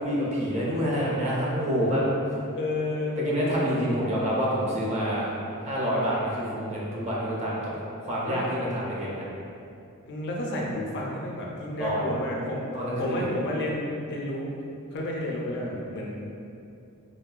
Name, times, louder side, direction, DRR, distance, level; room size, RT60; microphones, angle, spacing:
voice 1, 0.0-2.2 3.2-7.7 8.0-9.2 11.8-12.1 12.7-13.3, equal, 30° right, -5 dB, 0.5 m, -27 dB
voice 2, 2.6-3.2 8.2-8.4 10.1-12.7 13.0-14.5 14.9-16.1, left 1 dB, 50° left, -2 dB, 0.4 m, -31 dB
3.2 x 2.1 x 2.3 m, 2.6 s
head